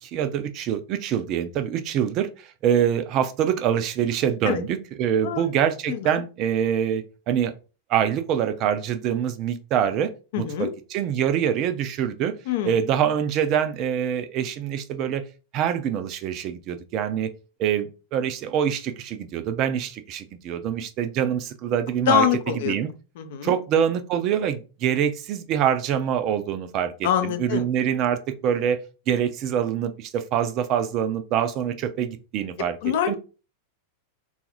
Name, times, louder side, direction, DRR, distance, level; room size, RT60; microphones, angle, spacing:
voice 1, 0.0-7.5 7.9-12.4 12.6-15.2 15.5-17.3 17.6-22.3 22.7-22.9 23.4-28.8 29.1-33.1, right 9 dB, 40° right, 0.4 m, -25 dB
voice 2, 5.2-5.5 5.9-6.2 10.3-10.7 12.5-12.8 22.1-22.7 23.2-23.5 27.0-27.6 32.8-33.1, left 9 dB, 55° left, 0.5 m, -24 dB
3.7 x 2.4 x 2.9 m
figure-of-eight pair, 90°, 0 cm